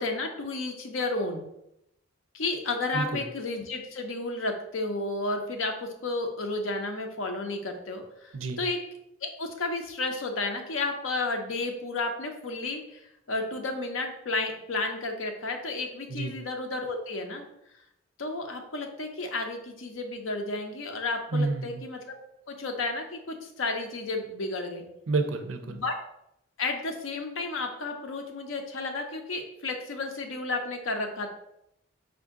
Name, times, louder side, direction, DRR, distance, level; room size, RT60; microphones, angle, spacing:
voice 1, 0.0-1.5 2.3-8.8 9.2-13.0 13.3-17.4 18.2-22.1 22.5-24.9 25.6-25.9 26.6-31.3, left 2 dB, 80° left, 4 dB, 0.7 m, -32 dB
voice 2, 21.3-21.8 25.1-25.8, right 3 dB, 80° right, 8 dB, 0.5 m, -29 dB
4.8 x 2.6 x 3.6 m, 0.81 s
head